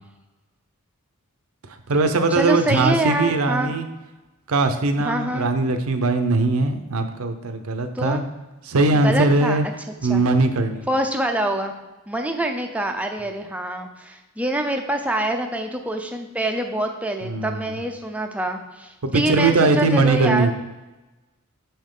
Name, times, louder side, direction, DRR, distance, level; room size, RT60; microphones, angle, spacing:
voice 1, 1.7-3.9 4.5-8.2 8.6-9.7 10.0-10.9 17.2-17.8 19.0-20.5, right 3 dB, 80° right, 8 dB, 0.7 m, -20 dB
voice 2, 2.3-3.7 5.0-5.5 7.9-8.2 9.0-9.6 10.1-10.2 10.9-11.7 12.1-20.5, right 1 dB, 5° right, 4 dB, 0.5 m, -25 dB
6.9 x 5.5 x 3.8 m, 1.1 s
head